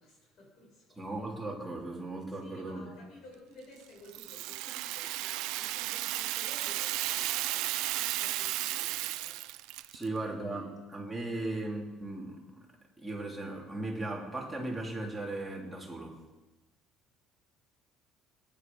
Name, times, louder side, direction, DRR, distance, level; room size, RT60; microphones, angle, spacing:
voice 1, 0.0-1.0 2.4-9.4 9.9-10.2 10.5-10.6 11.3-11.5, left 1 dB, 45° left, -1 dB, 7.0 m, -54 dB
voice 2, 1.0-2.9 9.9-12.6 13.0-16.2, right 2 dB, 5° right, -3 dB, 3.2 m, -37 dB
Rattle (instrument), 4.1-10.1, right 16 dB, 75° right, 0.6 m, -34 dB
21.5 x 10.5 x 5.4 m, 1.1 s
cardioid pair, 165°, 0 cm